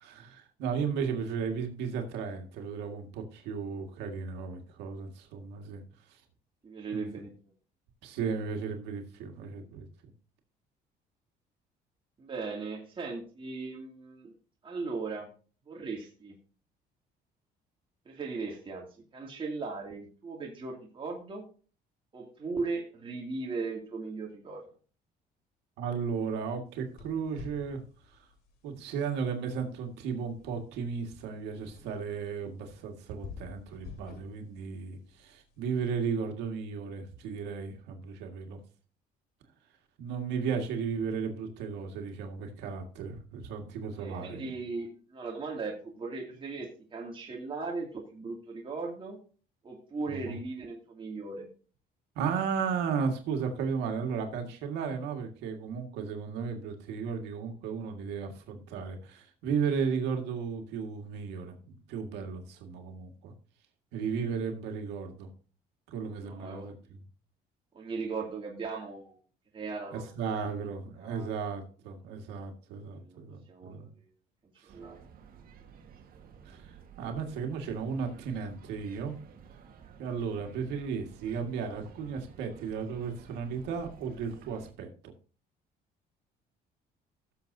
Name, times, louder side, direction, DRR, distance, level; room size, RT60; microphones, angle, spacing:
voice 1, 0.0-5.8 6.9-7.3 8.0-9.9 25.8-27.8 28.6-38.6 40.0-44.5 50.1-50.4 52.2-63.3 63.9-65.3 65.9-66.7 69.9-73.9 74.6-74.7 76.5-76.7 77.0-79.2 80.0-85.1, right 6 dB, 90° right, 4 dB, 1.8 m, -35 dB
voice 2, 6.6-7.3 12.2-14.3 14.6-15.3 15.7-16.4 18.1-18.9 19.1-21.4 22.1-24.7 44.0-49.2 49.6-51.5 64.2-64.4 66.2-66.7 67.7-69.2 69.5-70.1 71.0-71.3 73.0-73.2 73.5-73.8 74.6-75.0, right 4 dB, 30° right, -1 dB, 2.5 m, -38 dB
sound 1, 26.7-36.0, left 6 dB, 70° left, 2.6 m, -52 dB
sound 2, 74.7-84.7, right 6 dB, 60° right, 1.7 m, -53 dB
17.0 x 7.1 x 2.7 m, 0.38 s
cardioid pair, 110°, 17 cm